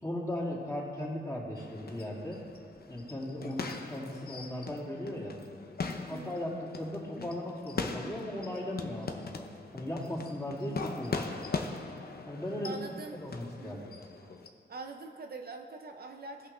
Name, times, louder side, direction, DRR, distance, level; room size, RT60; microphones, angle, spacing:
voice 1, 0.0-2.4 2.9-5.4 5.9-9.5 9.7-11.5 12.3-12.8 13.1-13.8, left 1 dB, 15° left, -5 dB, 2.5 m, -37 dB
sound 1, 1.6-14.5, left 4 dB, 55° left, 0.7 m, -41 dB
voice 2, 6.1-6.4 12.6-13.2 13.6-13.9 14.7-16.5, right 3 dB, 55° right, 4 dB, 0.6 m, -43 dB
17.5 x 5.8 x 3.3 m, 2.2 s
wide cardioid pair, 85°, 19 cm